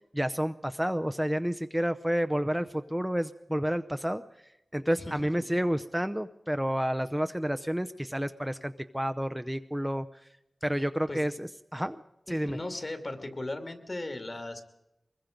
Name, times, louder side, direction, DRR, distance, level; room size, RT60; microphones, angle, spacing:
voice 1, 0.1-4.2 4.7-10.1 10.6-12.0 12.3-12.6, equal, 5° right, 9 dB, 0.7 m, -30 dB
voice 2, 12.4-14.6, left 2 dB, 45° left, 6 dB, 2.5 m, -37 dB
23.5 x 21.5 x 5.2 m, 0.88 s
wide cardioid pair, 60°, 0 cm